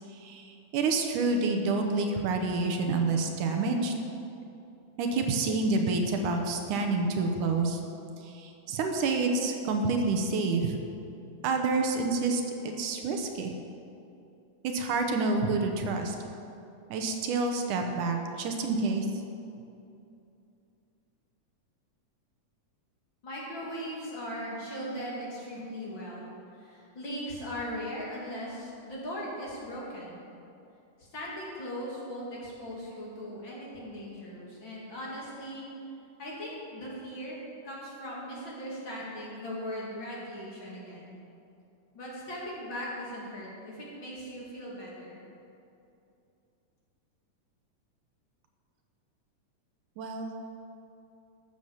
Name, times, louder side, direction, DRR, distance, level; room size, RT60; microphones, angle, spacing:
voice 1, 0.1-3.9 5.0-7.8 8.2-10.8 11.4-13.5 14.6-16.2 16.9-19.1 50.0-50.3, right 3 dB, 80° right, 4 dB, 2.4 m, -28 dB
voice 2, 23.2-26.3 26.6-30.2 31.0-35.6 36.2-37.4 37.6-41.2 41.9-45.2, equal, 40° left, -5 dB, 2.8 m, -39 dB
13.0 x 8.1 x 7.1 m, 2.7 s
omnidirectional pair, 3.7 m